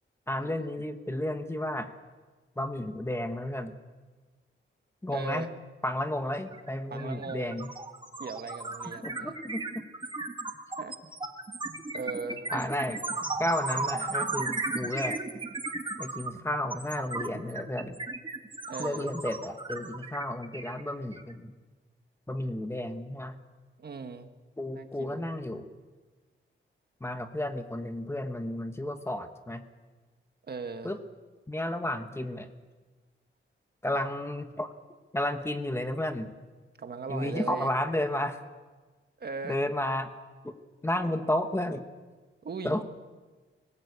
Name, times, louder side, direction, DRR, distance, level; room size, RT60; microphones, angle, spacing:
voice 1, 0.3-1.9 2.6-3.7 5.0-5.5 5.8-7.7 9.0-9.8 12.5-13.0 13.4-15.2 16.0-18.0 18.8-21.5 22.3-23.4 24.6-25.7 27.0-29.6 30.8-31.0 31.5-32.5 33.8-34.7 35.1-36.3 37.1-38.4 39.4-40.1 40.4-40.5 40.8-41.9 42.6-42.8, left 1 dB, 10° left, 7 dB, 1.1 m, -32 dB
voice 2, 5.1-5.5 6.9-7.5 8.2-9.4 10.8-10.9 11.9-12.5 13.2-13.3 18.7-19.1 23.8-24.3 24.7-25.3 30.4-30.9 36.8-37.7 39.2-39.6 42.4-42.8, right 4 dB, 50° right, 7 dB, 1.5 m, -38 dB
sound 1, 6.5-6.7 7.0-21.3, right 3 dB, 25° right, 1.5 m, -35 dB
20.0 x 18.0 x 8.3 m, 1.3 s
wide cardioid pair, 155°, 21 cm